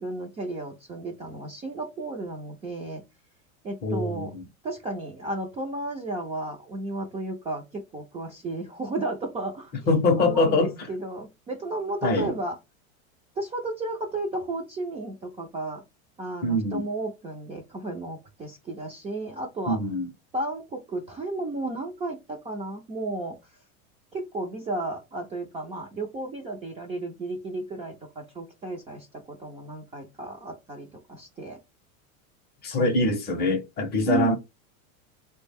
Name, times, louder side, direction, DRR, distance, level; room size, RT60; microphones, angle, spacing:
voice 1, 0.0-3.0 3.6-4.3 4.6-9.7 10.2-12.6 13.4-15.8 16.2-19.8 20.3-23.4 24.1-31.6 32.8-33.5 34.1-34.4, right 2 dB, 15° right, 0.4 m, -33 dB
voice 2, 3.8-4.4 9.9-10.7 12.0-12.3 16.4-16.9 19.7-20.1 32.6-34.4, left 2 dB, 25° left, 0.6 m, -24 dB
3.4 x 2.2 x 3.3 m
supercardioid pair, 135°, 42 cm